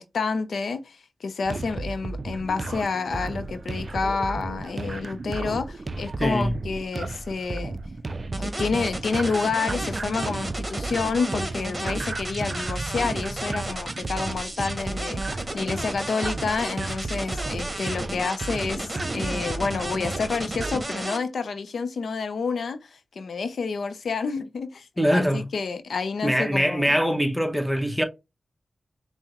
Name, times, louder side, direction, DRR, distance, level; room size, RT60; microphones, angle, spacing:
voice 1, 0.0-7.7 8.4-26.9, left 4 dB, 85° left, 0.4 m, -29 dB
sound 1, 1.4-20.8, right 3 dB, 50° right, 0.3 m, -33 dB
voice 2, 6.2-6.5 25.0-25.4 26.2-28.0, equal, ahead, 0.8 m, -23 dB
sound 2, 8.3-21.2, right 1 dB, 20° right, 1.2 m, -33 dB
5.7 x 2.0 x 2.9 m
cardioid pair, 65°, 0 cm